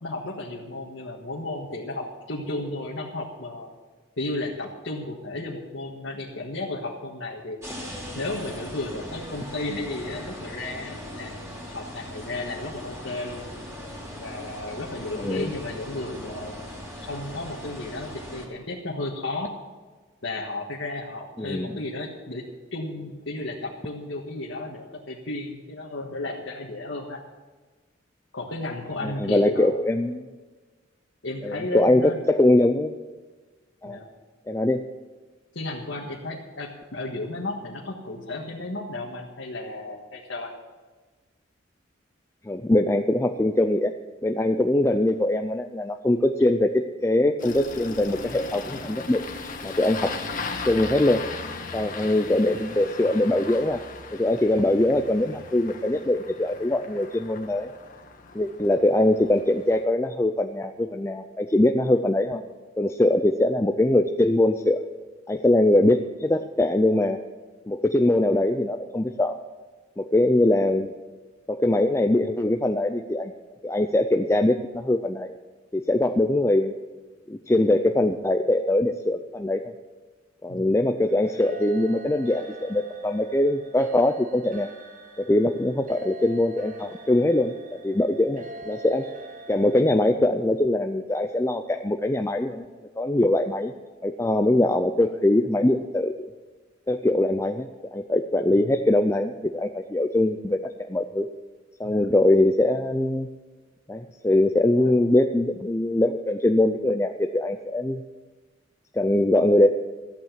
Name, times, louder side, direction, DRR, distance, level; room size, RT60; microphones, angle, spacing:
voice 1, 0.0-3.7 4.2-7.6 8.1-11.4 11.7-13.5 14.1-16.6 17.1-19.5 20.2-22.4 22.7-27.2 28.3-29.7 31.2-32.2 33.9-34.1 35.5-40.5 80.5-80.8 101.8-102.0 104.7-104.9, left 2 dB, 70° left, -3 dB, 1.6 m, -33 dB
sound 1, 7.6-18.5, equal, 15° right, 2.9 m, -39 dB
voice 2, 15.1-15.5 21.4-21.8 29.0-30.3 31.4-32.9 33.8-34.0 34.5-34.8 42.5-43.9 44.2-49.2 49.6-50.1 50.6-51.2 51.7-53.8 54.1-57.7 58.3-62.4 62.8-64.8 65.3-67.2 67.7-69.4 70.0-70.9 71.5-73.3 73.6-75.3 75.7-76.7 77.3-79.6 80.4-84.7 85.2-87.5 87.8-89.0 89.5-92.6 93.0-93.7 94.0-96.1 96.9-97.7 97.9-101.3 101.8-103.3 103.9-108.0 108.9-109.7, left 1 dB, 15° left, 5 dB, 0.5 m, -22 dB
Engine starting, 47.4-59.8, left 4 dB, 45° left, 1.3 m, -38 dB
sound 2, 81.1-90.1, right 2 dB, 45° right, 1.3 m, -44 dB
13.5 x 8.6 x 7.4 m, 1.3 s
head